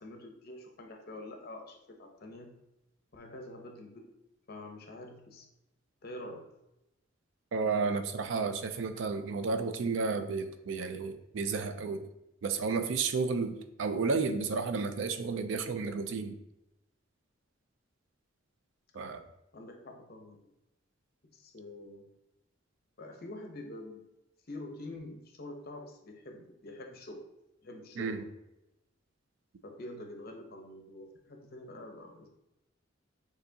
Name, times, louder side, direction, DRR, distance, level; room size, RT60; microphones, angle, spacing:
voice 1, 0.0-2.5 3.1-4.1 4.5-5.5 6.0-6.5 19.5-20.5 21.2-22.1 23.0-24.0 24.5-27.3 27.6-28.3 29.6-32.3, left 1 dB, 50° left, 3 dB, 0.7 m, -46 dB
voice 2, 7.5-12.0 12.4-16.4 18.9-19.2 28.0-28.2, right 4 dB, 70° right, 9 dB, 0.4 m, -32 dB
6.7 x 2.8 x 2.7 m, 0.89 s
head